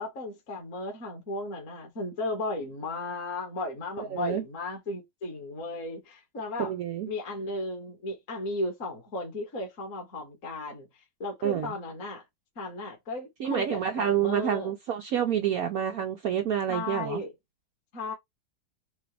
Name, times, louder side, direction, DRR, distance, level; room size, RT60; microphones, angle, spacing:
voice 1, 0.0-6.7 7.1-10.9 11.2-12.2 12.6-14.7 16.7-17.3 17.9-18.1, left 2 dB, 40° left, 1.6 m, -35 dB
voice 2, 4.0-4.4 6.6-7.1 11.4-11.7 13.4-17.2, right 9 dB, 90° right, 0.7 m, -28 dB
6.8 x 2.4 x 3.2 m
omnidirectional pair, 2.3 m